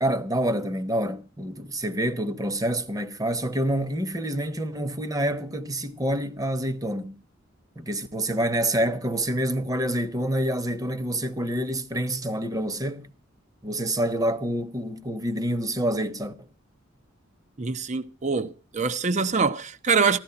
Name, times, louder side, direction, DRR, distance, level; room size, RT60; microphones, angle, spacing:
voice 1, 0.0-7.2 7.8-13.1 13.6-16.3, right 1 dB, 20° right, 1.0 m, -27 dB
voice 2, 17.6-20.2, right 5 dB, 35° right, 0.7 m, -24 dB
15.5 x 12.5 x 5.8 m
head